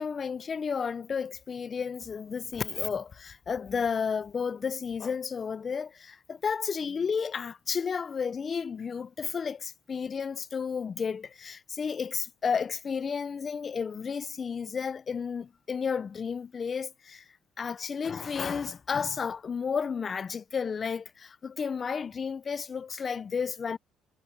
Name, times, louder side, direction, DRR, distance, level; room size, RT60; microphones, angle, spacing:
voice 1, 0.0-17.2 17.6-23.8, left 6 dB, 40° left, 0.6 m, -32 dB
cardioid pair, 90°, 0 cm